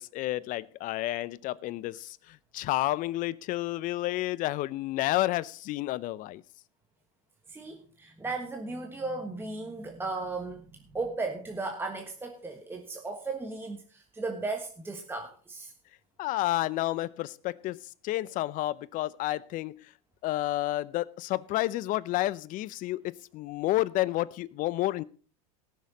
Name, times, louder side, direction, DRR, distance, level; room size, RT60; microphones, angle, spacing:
voice 1, 0.0-6.4 16.2-19.9 20.2-25.0, left 16 dB, 45° left, 0.6 m, -30 dB
voice 2, 7.5-15.7, right 3 dB, 10° right, 1.3 m, -36 dB
18.5 x 6.6 x 4.1 m
supercardioid pair, 115°, 19 cm